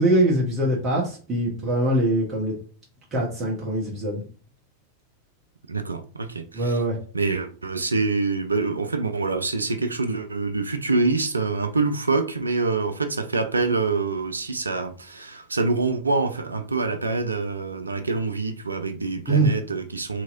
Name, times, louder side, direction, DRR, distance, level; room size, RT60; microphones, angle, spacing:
voice 1, 0.0-2.5 3.1-4.2 6.5-7.0 19.3-19.5, right 1 dB, 25° right, 1.1 m, -22 dB
voice 2, 5.7-6.8 7.1-20.2, right 3 dB, 80° right, 0.4 m, -25 dB
2.9 x 2.8 x 2.5 m
figure-of-eight pair, 90°, 0 cm